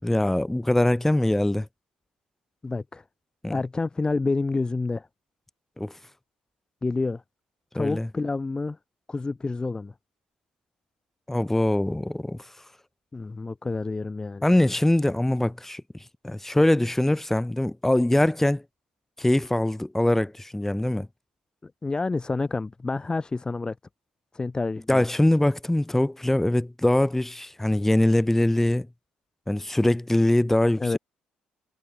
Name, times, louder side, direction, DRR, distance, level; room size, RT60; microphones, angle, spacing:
voice 1, 0.0-1.7 3.4-3.6 5.8-6.0 7.8-8.1 11.3-12.5 14.4-15.8 16.2-18.6 19.2-21.1 24.9-28.9 29.5-30.8, left 1 dB, 10° left, 6.2 m, -22 dB
voice 2, 2.6-3.0 3.5-5.1 6.8-7.2 7.7-8.8 9.1-9.9 13.1-14.4 21.6-23.8 24.3-25.1 30.8-31.0, left 3 dB, 25° left, 7.4 m, -28 dB
supercardioid pair, 60°, 3 cm